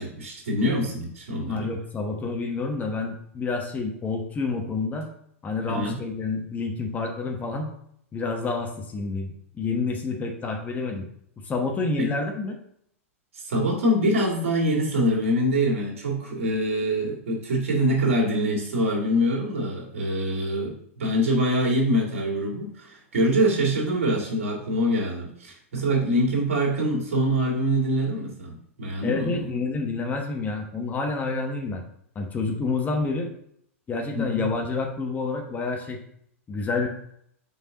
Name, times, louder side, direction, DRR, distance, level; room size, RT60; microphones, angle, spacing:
voice 1, 0.0-1.7 5.7-6.0 12.0-12.1 13.3-29.5 34.1-34.5, equal, 65° right, -2 dB, 2.1 m, -24 dB
voice 2, 1.5-5.1 5.4-7.7 8.1-11.1 11.4-12.5 29.0-31.8 32.1-33.3 33.9-36.0 36.5-36.9, left 3 dB, 20° left, 3 dB, 1.0 m, -28 dB
5.6 x 4.6 x 3.8 m, 0.69 s
hypercardioid pair, 100°, 8 cm